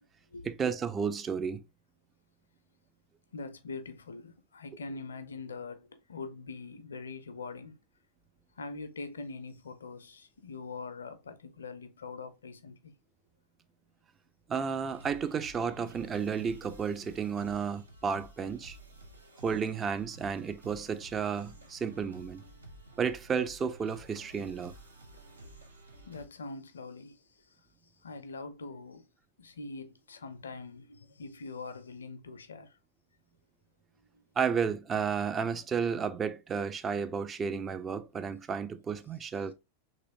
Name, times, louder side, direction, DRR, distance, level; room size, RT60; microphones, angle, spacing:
voice 1, 0.4-1.6 14.5-18.8 19.4-22.4 23.0-24.7 34.4-39.5, right 6 dB, 20° right, 0.4 m, -32 dB
voice 2, 3.3-7.8 8.6-12.9 26.1-27.2 28.0-29.0 29.4-32.7, left 3 dB, 70° left, 0.4 m, -43 dB
sound 1, 14.8-26.2, right 1 dB, 75° right, 0.7 m, -52 dB
3.0 x 2.9 x 2.6 m
figure-of-eight pair, 90°, 0 cm